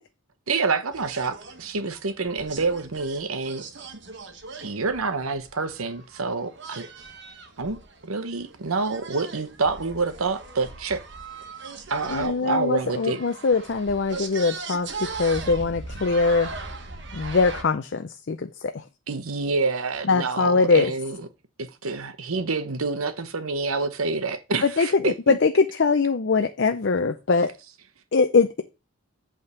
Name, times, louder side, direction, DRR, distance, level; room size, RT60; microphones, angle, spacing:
voice 1, 0.5-3.6 4.6-6.8 7.6-11.0 11.9-13.2 19.1-21.2 21.6-25.4, right 4 dB, 85° right, 0.9 m, -27 dB
sound 1, 0.9-17.6, right 4 dB, 55° right, 1.3 m, -39 dB
voice 2, 12.1-16.5 17.1-18.8 20.1-20.9 24.6-27.5 28.1-28.6, left 4 dB, 55° left, 0.5 m, -22 dB
8.2 x 3.6 x 6.6 m
head